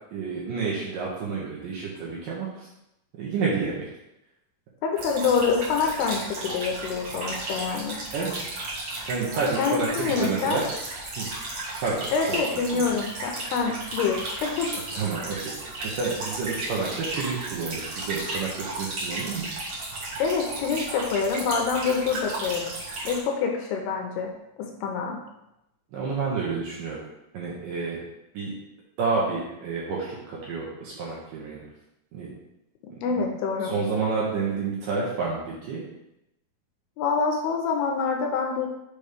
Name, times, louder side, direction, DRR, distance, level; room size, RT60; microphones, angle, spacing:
voice 1, 0.1-2.7 3.2-3.9 8.1-8.3 9.1-10.6 11.2-11.3 11.8-12.4 12.7-12.9 14.9-19.5 25.9-27.0 27.3-28.0 28.3-28.5 29.0-31.6 32.1-32.3 32.9-33.3 33.6-35.8, right 4 dB, 70° right, -5 dB, 2.2 m, -29 dB
voice 2, 4.8-8.0 9.6-10.6 12.1-14.8 20.2-22.7 23.0-24.3 24.6-25.2 33.0-33.7 37.0-38.7, left 5 dB, 80° left, 1 dB, 2.6 m, -26 dB
sound 1, 5.0-23.2, right 2 dB, 50° right, 1.9 m, -34 dB
6.7 x 3.1 x 5.1 m, 0.85 s
omnidirectional pair, 4.9 m